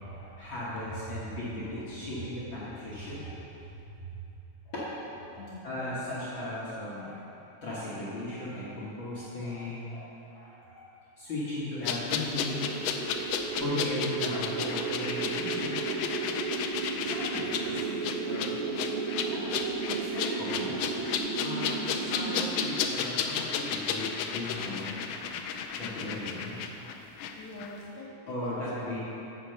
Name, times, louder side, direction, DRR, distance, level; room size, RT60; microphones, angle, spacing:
voice 1, 0.1-3.3 4.7-4.9 5.3-7.1 7.6-10.9 11.2-12.7 13.6-16.0 17.0-21.0 21.3-21.7 22.0-25.0 25.7-26.5 28.3-29.0, left 1 dB, 50° left, -10 dB, 1.6 m, -37 dB
voice 2, 3.7-4.4 5.4-5.9 27.4-29.0, equal, 65° left, -4 dB, 1.9 m, -44 dB
sound 1, 11.8-27.3 27.6-27.7, left 7 dB, 85° left, 2.2 m, -33 dB
sound 2, 12.1-22.8, right 5 dB, 70° right, 2.1 m, -34 dB
8.3 x 5.7 x 6.7 m, 2.9 s
omnidirectional pair, 3.8 m